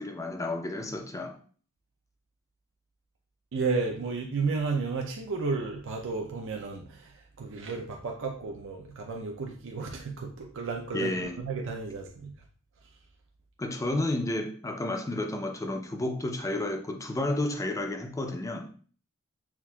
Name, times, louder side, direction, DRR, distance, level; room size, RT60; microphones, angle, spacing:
voice 1, 0.0-1.4 10.9-11.4 13.6-18.7, left 2 dB, 15° left, 0.4 m, -31 dB
voice 2, 3.5-12.3, right 4 dB, 60° right, 0.5 m, -33 dB
5.8 x 2.5 x 2.3 m
head